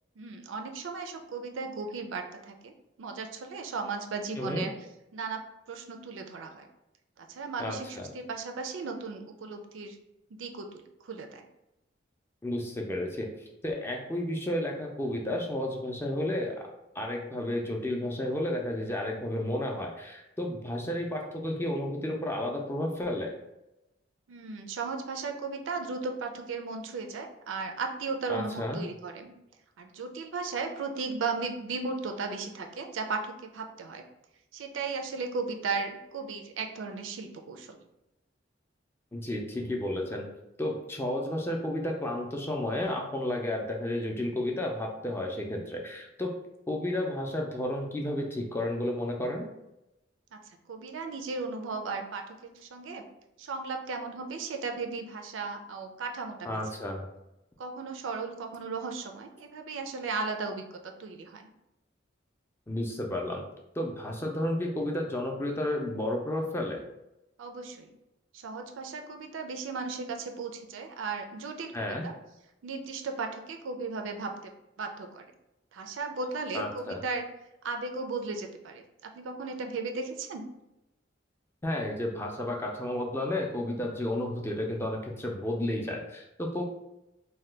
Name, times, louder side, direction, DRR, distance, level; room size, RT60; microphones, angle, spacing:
voice 1, 0.2-2.7 3.0-4.7 5.1-5.4 5.7-6.7 7.3-10.0 10.3-11.4 24.3-29.3 29.8-34.0 34.5-37.8 50.3-50.4 50.7-53.0 53.4-56.6 57.6-61.5 67.4-67.9 68.3-72.1 72.6-74.5 74.8-75.2 75.7-77.2 77.6-78.8 79.1-80.5, right 4 dB, 90° right, 5 dB, 0.4 m, -36 dB
voice 2, 7.6-8.1 12.4-13.3 13.6-16.7 17.0-23.3 28.3-28.8 39.1-40.2 40.6-46.3 46.7-49.4 56.4-57.0 62.7-63.4 63.8-66.8 71.7-72.0 76.5-77.0 81.6-86.6, left 1 dB, 15° left, 0 dB, 0.4 m, -32 dB
2.7 x 2.2 x 3.2 m, 0.90 s
head